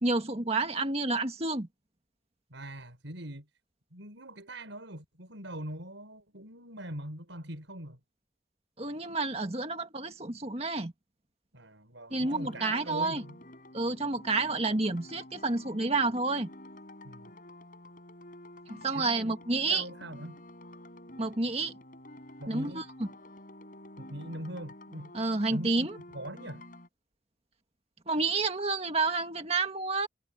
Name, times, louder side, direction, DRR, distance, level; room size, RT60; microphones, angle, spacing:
voice 1, 0.0-1.7 8.8-10.9 12.1-13.2 13.7-16.5 18.7-19.8 21.2-21.8 22.5-22.8 25.1-25.9 28.1-30.1, right 3 dB, 35° right, 1.9 m, -29 dB
voice 2, 2.5-3.5 3.9-8.0 11.5-13.4 17.0-17.3 18.9-19.4 19.7-20.4 22.4-22.9 24.0-25.1 25.5-25.9 26.1-26.6, right 1 dB, 85° right, 6.1 m, -42 dB
sound 1, 12.1-26.9, left 1 dB, 45° left, 6.2 m, -49 dB
head